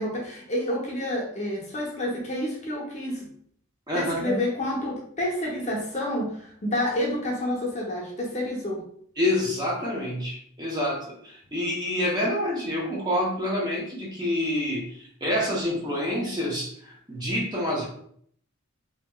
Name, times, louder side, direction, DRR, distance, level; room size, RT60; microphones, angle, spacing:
voice 1, 0.0-3.3 3.9-8.8, left 1 dB, 35° left, -3 dB, 0.7 m, -29 dB
voice 2, 3.9-4.4 9.2-16.7 17.1-17.8, left 1 dB, 20° right, -4 dB, 0.7 m, -27 dB
2.9 x 2.8 x 2.2 m, 0.63 s
head